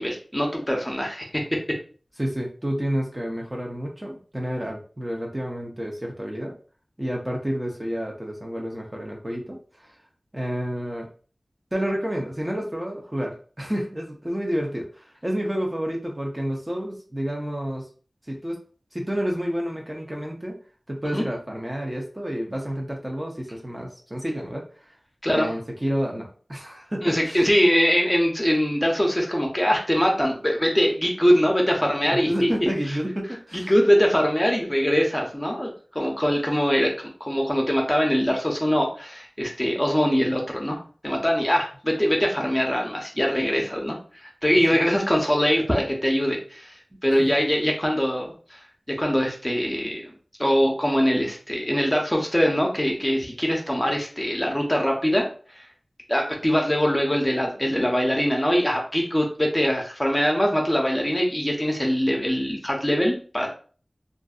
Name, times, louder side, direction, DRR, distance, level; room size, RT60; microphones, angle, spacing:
voice 1, 0.0-1.6 21.0-21.2 25.2-25.5 27.0-32.5 33.5-36.9 37.2-48.6 49.0-50.1 50.4-55.3 55.5-55.6 56.1-63.5, equal, 15° left, 0 dB, 0.8 m, -23 dB
voice 2, 2.2-6.5 7.0-9.9 10.3-11.1 11.7-17.9 18.3-18.6 18.9-20.6 20.9-24.6 25.3-27.5 32.1-33.7 44.7-44.8 47.2-47.4, equal, 25° right, 0 dB, 0.7 m, -30 dB
2.5 x 2.5 x 2.4 m, 0.40 s
wide cardioid pair, 45°, 0 cm